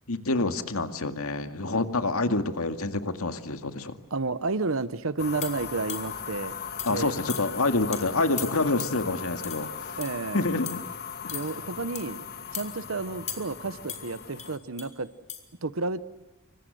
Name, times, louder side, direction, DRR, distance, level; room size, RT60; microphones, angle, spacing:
voice 1, 0.1-4.0 6.9-10.0 10.3-10.8 11.2-11.4, left 2 dB, 90° left, 8 dB, 2.1 m, -27 dB
voice 2, 4.1-6.5 6.9-7.1 10.0-10.4 11.3-12.2 12.5-15.1 15.6-16.0, right 3 dB, 70° right, 14 dB, 1.0 m, -31 dB
sound 1, 5.2-14.6, left 7 dB, 50° left, 1.7 m, -38 dB
sound 2, 5.4-6.2 6.8-7.0 7.3-7.6 7.9-8.0 8.4-9.0 9.4-9.7 10.0-10.3 10.7-10.9 11.3-11.5 11.9-12.2 12.5-12.7 13.3-13.6 13.9-14.9 15.3-15.4, left 8 dB, 35° left, 3.5 m, -38 dB
27.5 x 24.5 x 7.8 m, 1.0 s
head